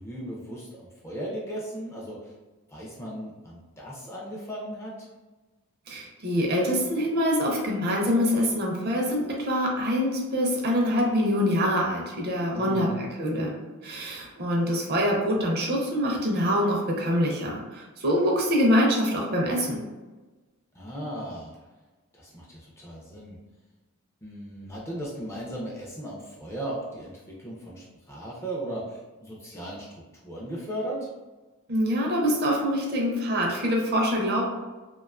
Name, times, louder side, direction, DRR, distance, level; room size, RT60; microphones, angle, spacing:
voice 1, 0.0-2.3 2.7-5.1 12.5-13.0 20.7-21.5 22.1-23.4 24.2-29.9 30.2-31.0, right 1 dB, 10° left, -4 dB, 0.3 m, -36 dB
voice 2, 5.9-13.5 13.8-19.8 31.7-34.4, equal, 45° right, -1 dB, 0.5 m, -25 dB
2.4 x 2.2 x 2.3 m, 1.2 s
head